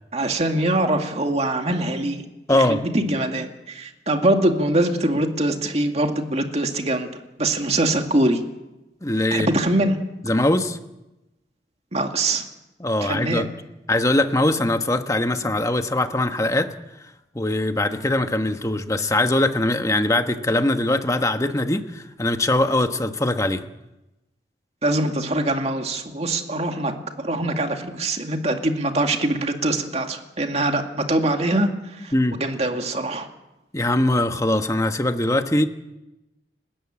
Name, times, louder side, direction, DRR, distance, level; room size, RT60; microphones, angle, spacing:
voice 1, 0.1-7.1 7.4-8.4 9.3-10.0 11.9-12.4 13.0-13.5 15.4-15.5 24.8-32.1 32.4-33.3, right 1 dB, 35° right, 4 dB, 2.2 m, -23 dB
voice 2, 2.5-2.8 9.0-9.5 10.2-10.8 12.8-13.5 13.9-16.7 17.3-23.6 32.1-32.4 33.7-35.7, left 1 dB, 20° left, 7 dB, 1.3 m, -21 dB
29.5 x 13.5 x 8.8 m, 0.98 s
head